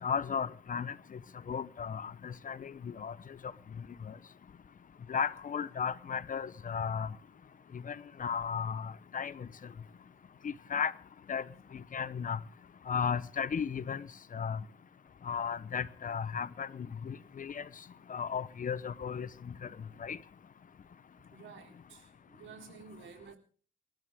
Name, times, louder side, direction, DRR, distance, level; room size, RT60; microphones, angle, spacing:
voice 1, 0.0-1.2 1.5-3.1 3.8-4.1 5.1-7.1 7.7-9.5 10.4-10.9 11.3-11.4 11.7-12.4 12.9-14.1 14.3-14.6 15.2-17.7 18.1-19.7 20.0-20.2, left 7 dB, 40° left, 0.9 m, -35 dB
voice 2, 21.3-23.4, right 6 dB, 75° right, 4.0 m, -52 dB
29.0 x 13.0 x 3.7 m
cardioid pair, 90°, 20 cm